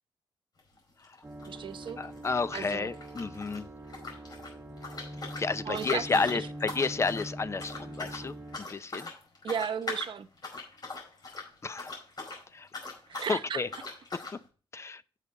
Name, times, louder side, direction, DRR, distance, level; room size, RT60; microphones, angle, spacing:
sound 1, 0.6-0.8 1.0-3.6 3.9-12.4 12.7-13.4 13.7-14.4, left 3 dB, 45° left, 4.9 m, -41 dB
sound 2, 1.2-8.6, right 1 dB, 20° right, 1.4 m, -43 dB
voice 1, 1.5-2.0 2.5-2.9 5.6-6.5 9.4-10.3 13.1-13.6, right 7 dB, 55° right, 0.8 m, -35 dB
voice 2, 2.0-3.7 5.4-9.1 11.6-11.9 12.5-12.7 13.1-13.7 14.7-15.0, left 4 dB, 30° left, 0.6 m, -31 dB
8.3 x 7.3 x 3.8 m
cardioid pair, 120°, 10 cm